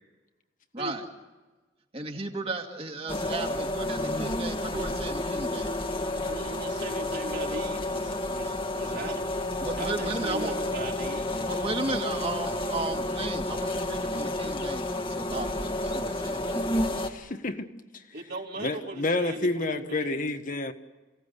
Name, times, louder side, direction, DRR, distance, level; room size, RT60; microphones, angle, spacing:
voice 1, 0.7-1.0 1.9-5.8 9.6-10.6 11.4-17.0, right 3 dB, 35° right, 4 dB, 2.4 m, -35 dB
sound 1, 3.1-17.1, left 1 dB, 30° left, 1.7 m, -30 dB
voice 2, 6.2-9.4 9.7-11.5 18.1-20.2, right 1 dB, 60° right, -1 dB, 4.1 m, -38 dB
voice 3, 17.1-17.7 18.6-20.7, left 2 dB, 45° left, 7 dB, 1.4 m, -29 dB
29.0 x 17.0 x 8.3 m, 1.3 s
head